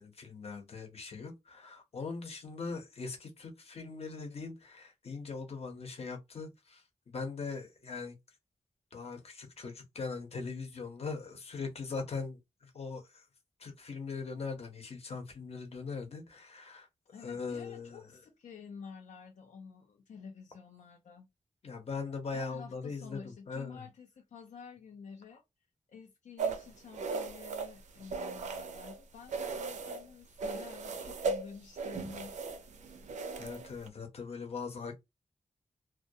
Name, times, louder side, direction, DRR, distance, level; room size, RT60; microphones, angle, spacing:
voice 1, 0.0-8.2 8.9-13.2 13.6-16.9 17.2-18.1 21.6-23.9 33.4-35.0, left 4 dB, 55° left, 0.8 m, -41 dB
voice 2, 17.1-21.3 22.3-25.4 25.9-32.3, left 6 dB, 85° left, 0.5 m, -50 dB
sound 1, 26.4-29.0 29.3-30.1 30.4-33.9, right 4 dB, 80° right, 0.4 m, -37 dB
2.2 x 2.1 x 2.7 m
wide cardioid pair, 120°, 12 cm